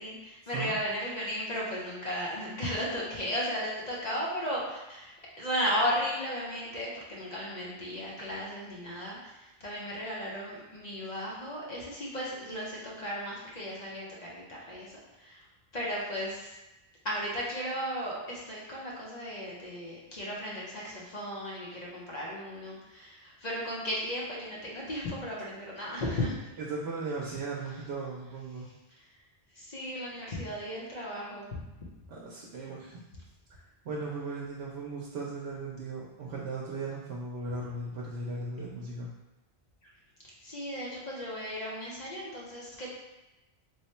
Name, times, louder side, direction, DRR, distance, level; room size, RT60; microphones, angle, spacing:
voice 1, 0.0-15.5 15.7-16.5 17.0-26.5 29.0-29.1 29.5-31.6 40.4-42.9, equal, 45° left, -5 dB, 0.8 m, -35 dB
voice 2, 26.7-28.7 32.1-33.0 33.8-39.1, right 3 dB, 80° right, -3 dB, 0.9 m, -37 dB
3.1 x 2.1 x 4.2 m, 1.0 s
omnidirectional pair, 1.1 m